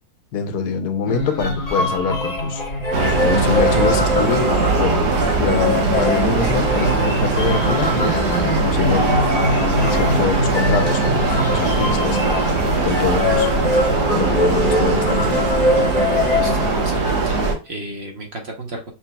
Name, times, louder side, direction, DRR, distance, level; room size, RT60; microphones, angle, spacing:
voice 1, 0.3-2.6 3.2-8.2 8.6-12.3 12.8-13.5 13.9-15.5, left 5 dB, 80° left, 1.2 m, -25 dB
sound 1, 1.1-17.1, left 1 dB, 30° left, 0.9 m, -22 dB
sound 2, 2.9-17.5, right 3 dB, 85° right, 1.6 m, -20 dB
voice 2, 16.4-18.9, right 2 dB, 50° right, 1.0 m, -33 dB
5.8 x 3.2 x 2.2 m
omnidirectional pair, 1.7 m